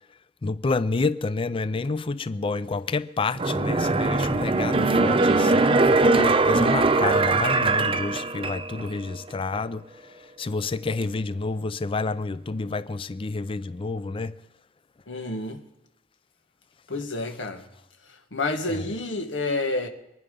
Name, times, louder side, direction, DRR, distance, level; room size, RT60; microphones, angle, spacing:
voice 1, 0.4-9.8 10.4-14.3 18.7-18.9, left 3 dB, 30° left, 0.4 m, -29 dB
sound 1, 3.3-8.9 9.3-9.4, right 3 dB, 30° right, 0.6 m, -21 dB
voice 2, 15.1-15.6 16.9-17.6 18.3-19.9, left 2 dB, 85° left, 1.7 m, -29 dB
23.5 x 10.5 x 5.3 m
head